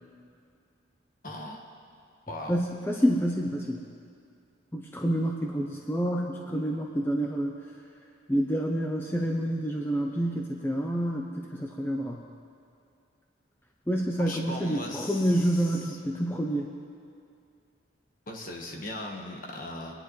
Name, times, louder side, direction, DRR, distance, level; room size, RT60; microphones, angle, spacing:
voice 1, 1.2-1.7 2.3-2.6 14.2-16.0 18.3-19.9, left 1 dB, 45° left, 1 dB, 1.4 m, -39 dB
voice 2, 2.5-3.8 4.7-7.5 8.3-12.2 13.9-16.7, equal, 10° left, 0 dB, 0.6 m, -28 dB
24.0 x 10.5 x 3.2 m, 2.4 s
head